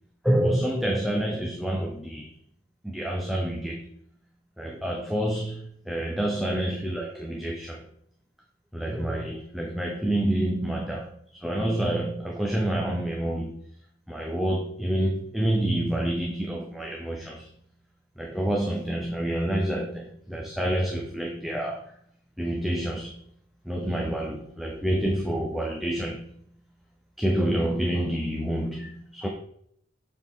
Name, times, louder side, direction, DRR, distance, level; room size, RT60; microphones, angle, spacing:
voice 1, 0.2-2.3 2.8-3.9 4.6-7.9 8.7-13.6 14.1-17.5 18.2-21.8 22.4-23.2 23.7-26.2 27.2-29.3, right 1 dB, ahead, -1 dB, 0.6 m, -28 dB
6.9 x 4.0 x 3.6 m, 0.68 s
head